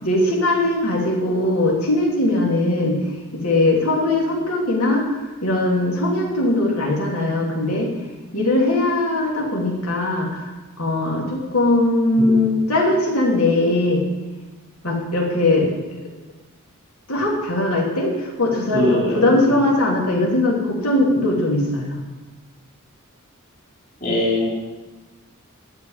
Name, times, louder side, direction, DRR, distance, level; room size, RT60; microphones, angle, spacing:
voice 1, 0.0-2.9 3.3-5.0 5.4-7.9 8.3-10.5 10.8-14.0 14.8-15.7 17.1-22.0, left 2 dB, 85° left, -2 dB, 2.9 m, -20 dB
voice 2, 12.1-12.5 18.7-19.5 24.0-24.5, left 1 dB, 40° left, -5 dB, 3.7 m, -22 dB
13.5 x 5.1 x 8.9 m, 1.2 s
head